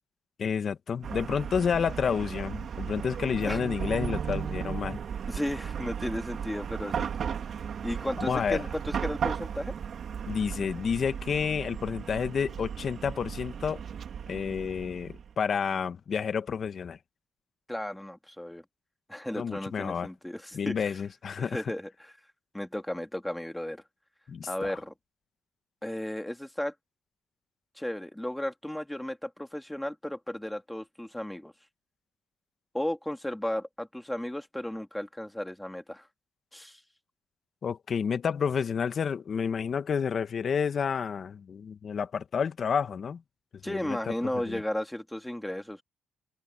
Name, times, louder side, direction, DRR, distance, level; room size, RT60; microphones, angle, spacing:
voice 1, 0.4-5.0 8.2-8.6 10.3-13.8 14.3-17.0 19.3-20.1 20.5-21.6 24.3-24.5 37.6-43.2 43.6-44.0 44.5-44.6, left 6 dB, 50° left, 1.5 m, -30 dB
Chatter / Car passing by / Traffic noise roadway noise, 1.0-15.3, right 7 dB, 55° right, 2.6 m, -35 dB
voice 2, 5.3-7.1 7.8-9.8 17.7-18.6 19.1-21.0 21.4-22.1 22.5-23.8 24.5-24.9 25.8-26.7 27.8-31.5 32.7-36.1 36.5-36.8 43.6-45.8, left 1 dB, 5° left, 2.9 m, -34 dB
cardioid pair, 90°, 0 cm